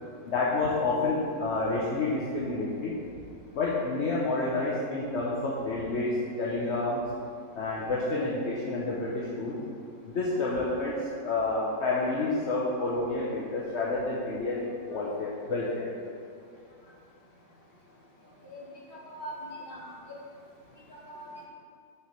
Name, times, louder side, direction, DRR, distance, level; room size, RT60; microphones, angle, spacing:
voice 1, 0.3-3.0 3.5-7.0 7.6-9.6 10.1-15.9, left 3 dB, 50° left, -5 dB, 0.9 m, -29 dB
voice 2, 18.4-20.2 20.9-21.3, equal, 30° left, -5 dB, 1.5 m, -42 dB
6.2 x 4.7 x 6.6 m, 2.3 s
omnidirectional pair, 1.9 m